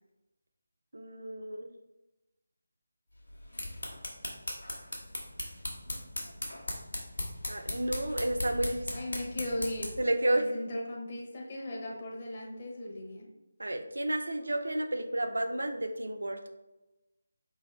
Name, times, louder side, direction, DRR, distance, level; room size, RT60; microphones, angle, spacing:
voice 1, 0.9-1.7 7.5-8.8 10.0-10.4 13.6-16.5, right 1 dB, 70° right, 6 dB, 0.5 m, -31 dB
sound 1, 3.3-10.1, left 1 dB, 75° left, 1.2 m, -38 dB
voice 2, 8.9-9.9 10.3-13.3, left 1 dB, 35° left, -1 dB, 0.9 m, -37 dB
4.3 x 3.3 x 3.2 m, 1.0 s
figure-of-eight pair, 155°, 0 cm